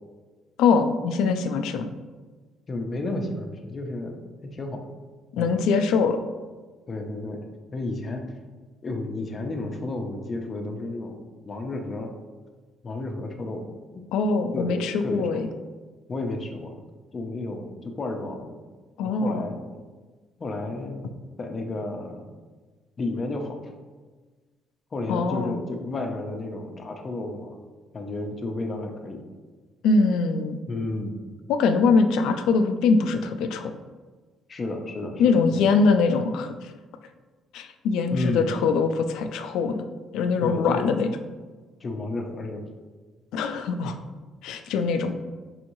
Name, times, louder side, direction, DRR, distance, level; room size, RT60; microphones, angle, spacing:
voice 1, 0.6-1.9 5.3-6.2 14.1-15.5 19.0-19.5 25.1-25.6 29.8-30.6 31.5-33.7 35.2-36.7 37.5-39.9 40.1-41.1 43.3-44.0 44.4-45.1, left 4 dB, 90° left, 8 dB, 0.3 m, -22 dB
voice 2, 2.7-4.8 5.4-5.6 6.9-8.3 8.8-12.1 12.8-13.6 13.9-14.1 14.5-15.4 16.1-16.7 17.1-18.5 19.0-19.6 20.4-21.1 21.4-22.2 23.0-23.6 24.9-27.6 27.9-29.2 30.7-31.2 34.5-35.8 38.1-38.5 40.4-40.9 41.8-42.6, left 2 dB, 30° left, 4 dB, 0.5 m, -32 dB
5.5 x 3.0 x 2.6 m, 1.4 s
cardioid pair, 135°, 0 cm